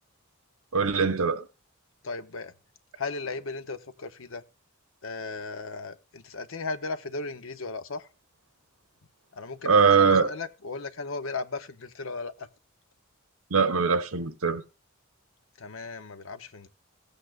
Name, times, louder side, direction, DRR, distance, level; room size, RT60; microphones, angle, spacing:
voice 1, 0.7-1.5 9.6-10.3 13.5-14.6, right 5 dB, 85° right, 1.0 m, -22 dB
voice 2, 2.0-2.5 3.0-4.4 5.0-8.1 9.3-12.5 15.6-16.7, left 3 dB, 70° left, 0.8 m, -36 dB
16.0 x 8.4 x 2.4 m
head